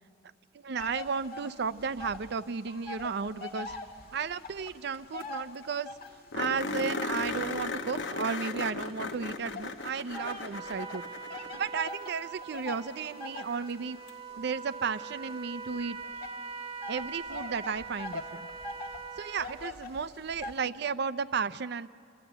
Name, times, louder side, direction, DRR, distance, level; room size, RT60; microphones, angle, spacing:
voice 1, 0.6-3.7 4.1-5.9 6.3-11.1 11.5-14.0 14.4-16.0 16.9-18.5 19.2-21.9, right 5 dB, 65° right, 15 dB, 0.5 m, -34 dB
sound 1, 0.8-2.3 2.6-6.3 6.9-8.9 9.5-20.6, left 3 dB, 60° left, 1.5 m, -43 dB
sound 2, 4.9-5.0 5.2-5.3 5.6-5.7 6.3-11.7 14.1-14.2 17.0-17.1, left 3 dB, 75° left, 1.0 m, -36 dB
Trumpet, 10.1-19.7, right 5 dB, 30° right, 0.9 m, -43 dB
29.0 x 12.0 x 8.0 m, 2.3 s
head